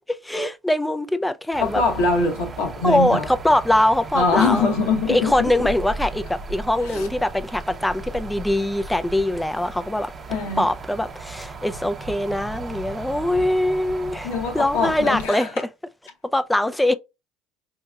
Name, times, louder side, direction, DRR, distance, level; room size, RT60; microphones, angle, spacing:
voice 1, 0.1-1.8 2.8-4.7 5.1-10.1 10.6-15.5 16.3-16.9, left 1 dB, 10° left, 0.4 m, -22 dB
sound 1, 1.5-15.3, right 3 dB, 35° right, 0.7 m, -36 dB
voice 2, 1.6-3.3 4.1-5.3 6.8-7.1 10.3-10.7 14.2-15.5, left 3 dB, 85° left, 0.9 m, -23 dB
4.5 x 2.8 x 2.3 m
hypercardioid pair, 75°, 0 cm